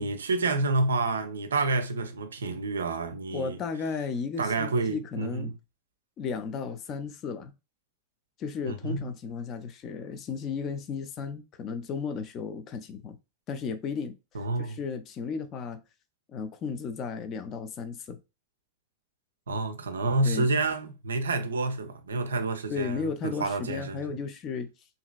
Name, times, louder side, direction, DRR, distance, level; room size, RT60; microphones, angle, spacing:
voice 1, 0.0-3.6 4.4-5.5 8.7-9.1 14.3-14.8 19.5-24.2, right 3 dB, 70° right, 0.3 m, -29 dB
voice 2, 3.3-5.5 6.2-7.5 8.4-13.2 13.5-14.2 14.6-15.8 16.3-18.2 20.2-20.5 22.7-24.7, left 5 dB, 35° left, 0.4 m, -34 dB
2.9 x 2.6 x 2.2 m
figure-of-eight pair, 90°, 0 cm